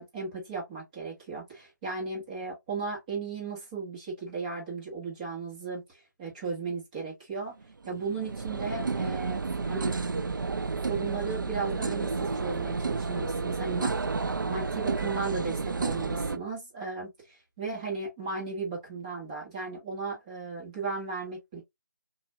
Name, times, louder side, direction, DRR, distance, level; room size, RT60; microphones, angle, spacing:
voice 1, 0.0-7.6 7.9-9.9 10.8-13.9 14.2-21.6, right 4 dB, 20° right, 1.4 m, -36 dB
sound 1, 7.6-16.4, right 4 dB, 90° right, 0.4 m, -31 dB
4.0 x 2.6 x 2.3 m
figure-of-eight pair, 160°, 10 cm